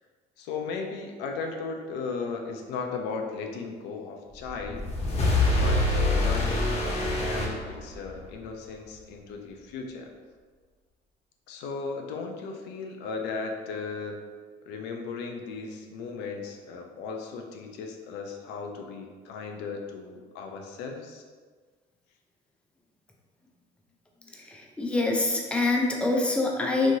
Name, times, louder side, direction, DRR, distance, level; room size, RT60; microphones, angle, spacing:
voice 1, 0.4-4.9 5.6-10.1 11.5-14.2 14.7-21.2, left 4 dB, 90° left, 3 dB, 0.4 m, -36 dB
sound 1, 4.4-8.2, left 2 dB, 40° left, 0.7 m, -25 dB
voice 2, 24.3-27.0, left 2 dB, 5° left, -1 dB, 0.4 m, -25 dB
3.0 x 2.5 x 2.6 m, 1.5 s
cardioid pair, 110°, 17 cm